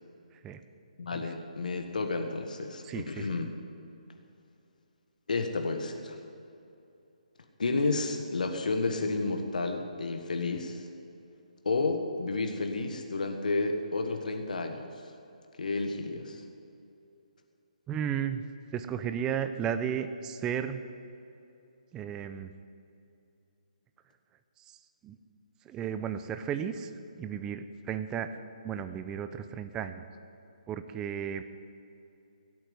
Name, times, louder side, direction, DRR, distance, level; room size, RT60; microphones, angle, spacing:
voice 1, 1.0-3.5 5.3-6.2 7.6-10.9 11.6-15.1 15.6-16.5, left 3 dB, 70° left, 5 dB, 1.6 m, -31 dB
voice 2, 2.8-3.3 17.9-18.4 18.7-20.8 21.9-22.5 24.7-24.8 25.0-25.2 25.6-26.9 27.2-28.3 28.6-30.0 30.7-31.4, right 8 dB, 15° right, 9 dB, 0.6 m, -34 dB
17.0 x 8.7 x 9.5 m, 2.7 s
figure-of-eight pair, 145°, 4 cm